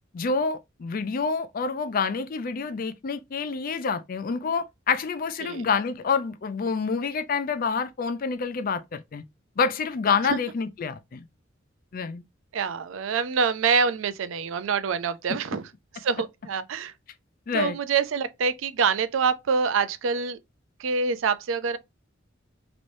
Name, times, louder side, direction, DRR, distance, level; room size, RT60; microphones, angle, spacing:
voice 1, 0.1-9.2 9.6-11.2 11.9-12.2 17.5-17.8, left 5 dB, 45° left, 0.4 m, -27 dB
voice 2, 12.5-15.6 16.0-16.9 17.5-20.4 20.8-21.8, right 5 dB, 85° right, 0.4 m, -26 dB
3.1 x 3.0 x 2.6 m
head